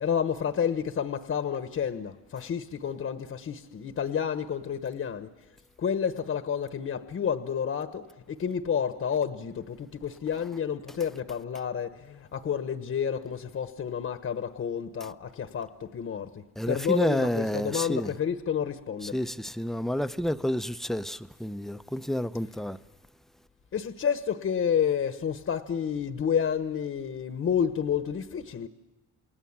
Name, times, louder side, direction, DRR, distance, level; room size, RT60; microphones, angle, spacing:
voice 1, 0.0-5.3 5.8-8.0 8.4-9.8 10.0-11.9 12.3-15.7 15.9-16.2 16.7-19.1 23.7-28.7, left 7 dB, 45° left, 1.2 m, -29 dB
voice 2, 16.6-18.1 19.0-22.8, left 1 dB, ahead, 0.7 m, -30 dB
29.0 x 19.5 x 7.3 m
cardioid pair, 90°, 30 cm